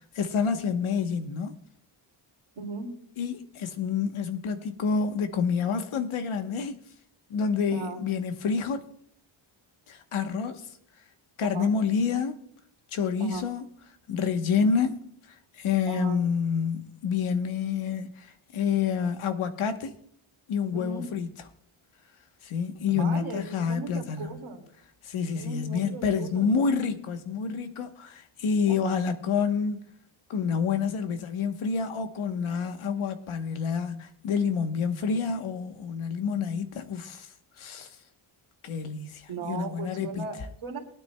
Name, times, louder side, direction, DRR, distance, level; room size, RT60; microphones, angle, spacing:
voice 1, 0.1-1.6 3.2-6.8 7.3-8.8 9.9-10.6 11.4-12.4 12.9-13.6 14.1-15.0 15.6-19.9 20.5-21.3 22.4-24.3 25.0-29.8 30.3-37.3 37.6-37.9 38.6-40.3, left 6 dB, 80° left, 1.1 m, -28 dB
voice 2, 2.6-2.9 7.7-8.0 11.5-11.7 13.2-13.5 15.9-16.2 20.7-21.1 22.9-24.6 25.3-26.5 28.7-29.0 39.3-40.8, right 3 dB, 75° right, 2.4 m, -37 dB
22.5 x 9.4 x 2.2 m
wide cardioid pair, 120°, 49 cm